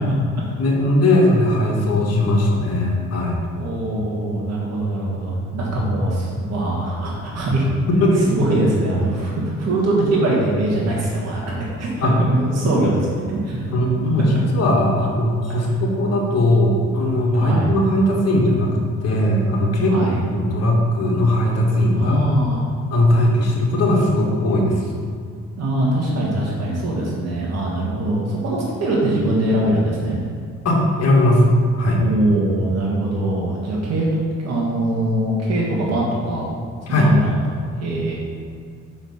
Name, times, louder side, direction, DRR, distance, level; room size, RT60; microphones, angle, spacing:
voice 1, 0.1-0.6 3.5-7.7 8.3-13.7 17.3-17.7 19.9-20.2 21.9-22.7 25.6-30.2 32.0-34.1 34.4-36.5 36.9-37.3 37.8-38.1, right 1 dB, 60° right, -5 dB, 1.6 m, -22 dB
voice 2, 0.6-3.4 8.0-8.3 12.0-12.1 13.7-19.9 20.3-22.3 22.9-24.9 30.7-32.0 36.9-37.1, left 1 dB, 55° left, -2 dB, 1.6 m, -18 dB
5.8 x 4.4 x 5.5 m, 2.2 s
cardioid pair, 90°, 30 cm